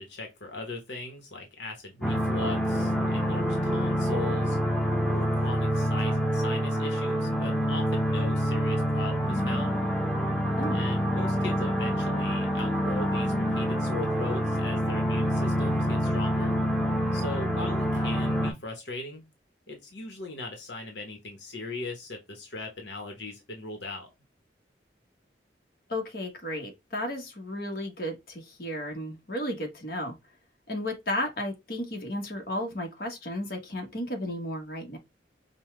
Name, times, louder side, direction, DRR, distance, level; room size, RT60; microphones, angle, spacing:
voice 1, 0.0-4.6 5.1-9.8 10.7-16.6 17.1-19.2 19.7-24.1, left 2 dB, 80° left, 1.1 m, -39 dB
sound 1, 2.0-18.5, equal, ahead, 0.8 m, -27 dB
voice 2, 10.6-10.9 25.9-30.1 30.7-35.0, left 1 dB, 55° left, 1.2 m, -33 dB
5.4 x 2.3 x 3.1 m
head